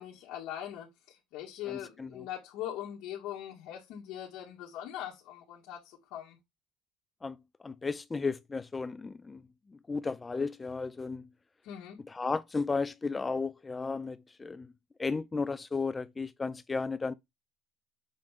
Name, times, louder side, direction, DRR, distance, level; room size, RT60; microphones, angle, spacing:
voice 1, 0.0-5.8 6.1-6.4 11.6-12.0, left 11 dB, 65° left, 2.7 m, -41 dB
voice 2, 1.7-2.3 7.2-7.4 7.6-9.4 9.9-11.3 12.1-14.7 15.0-17.1, left 4 dB, 15° left, 0.3 m, -34 dB
7.6 x 4.4 x 3.6 m
cardioid pair, 140°, 0 cm